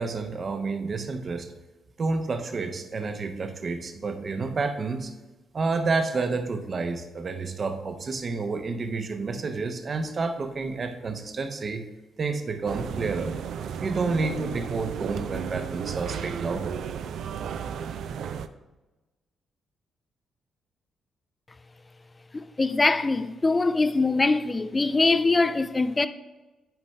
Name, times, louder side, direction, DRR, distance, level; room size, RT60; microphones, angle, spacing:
voice 1, 0.0-1.5 2.0-5.1 5.5-11.9 12.2-13.4 13.8-16.8, right 4 dB, 45° right, 0.8 m, -29 dB
sound 1, 12.7-18.5, right 8 dB, 65° right, 0.4 m, -34 dB
voice 2, 22.3-26.1, left 3 dB, 30° left, 0.5 m, -23 dB
9.2 x 5.1 x 3.3 m
hypercardioid pair, 40°, 0 cm